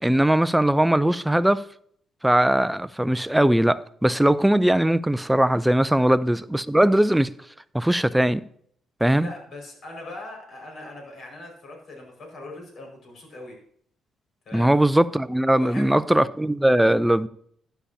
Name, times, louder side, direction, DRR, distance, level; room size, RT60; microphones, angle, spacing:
voice 1, 0.0-1.6 2.2-7.3 7.7-8.4 9.0-9.3 14.5-17.3, right 1 dB, 5° right, 0.5 m, -20 dB
voice 2, 9.1-13.6 14.4-14.7 15.5-16.1, left 2 dB, 60° left, 5.1 m, -40 dB
12.0 x 10.0 x 2.8 m
cardioid pair, 90°, 0 cm